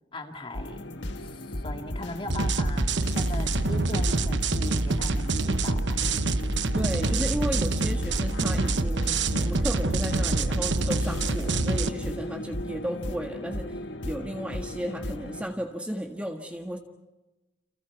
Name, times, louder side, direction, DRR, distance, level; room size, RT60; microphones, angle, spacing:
voice 1, 0.1-6.1 12.0-12.3 14.1-14.4, left 1 dB, 30° left, 4 dB, 2.2 m, -40 dB
sound 1, 0.5-15.5, left 1 dB, 85° left, 1.7 m, -35 dB
sound 2, 2.3-11.9, right 3 dB, 80° right, 1.1 m, -26 dB
voice 2, 6.7-16.8, equal, 5° right, 3 dB, 1.6 m, -34 dB
30.0 x 29.0 x 4.7 m, 1.1 s
head